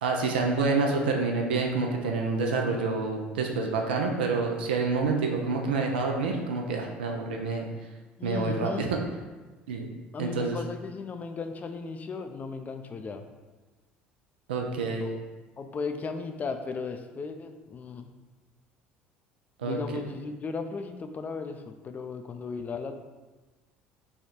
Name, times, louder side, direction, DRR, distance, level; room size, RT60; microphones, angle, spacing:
voice 1, 0.0-7.7 8.2-9.0 9.7-9.9 10.2-10.6 14.5-15.1 19.6-19.8, right 4 dB, 80° right, 1 dB, 0.4 m, -27 dB
voice 2, 8.2-8.9 10.1-13.2 15.0-15.1 15.6-18.1 19.6-22.9, left 4 dB, 30° left, 7 dB, 0.4 m, -36 dB
3.4 x 2.3 x 4.2 m, 1.2 s
hypercardioid pair, 65°, 5 cm